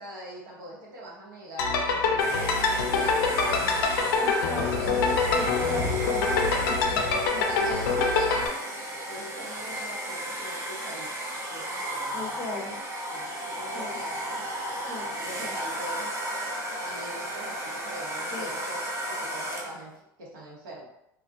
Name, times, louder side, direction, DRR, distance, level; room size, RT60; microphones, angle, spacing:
voice 1, 0.0-5.9 7.3-8.7 9.1-12.8 13.1-14.5 15.0-16.1 16.8-20.8, right 1 dB, 75° right, -4 dB, 0.9 m, -43 dB
sound 1, 1.6-8.5, left 4 dB, 75° left, 0.4 m, -25 dB
Domestic sounds home sounds, 2.2-19.9, right 1 dB, 25° right, 0.7 m, -34 dB
voice 2, 4.2-5.0 5.3-7.7 12.1-12.8 13.7-14.0 14.9-15.1 15.4-15.5 18.3-18.5, left 2 dB, 20° left, -1 dB, 0.6 m, -38 dB
2.2 x 2.1 x 2.6 m, 0.80 s
hypercardioid pair, 85°, 11 cm